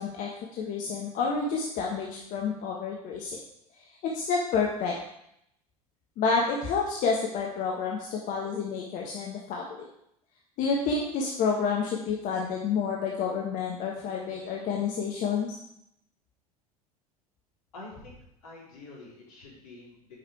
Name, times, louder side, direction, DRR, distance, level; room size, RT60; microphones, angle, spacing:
voice 1, 0.0-3.4 4.0-5.0 6.2-9.8 10.6-15.5, left 5 dB, 45° left, -1 dB, 1.3 m, -29 dB
voice 2, 17.7-20.1, left 2 dB, 70° left, -5 dB, 3.7 m, -47 dB
8.4 x 5.7 x 4.7 m, 0.77 s
figure-of-eight pair, 75°, 19 cm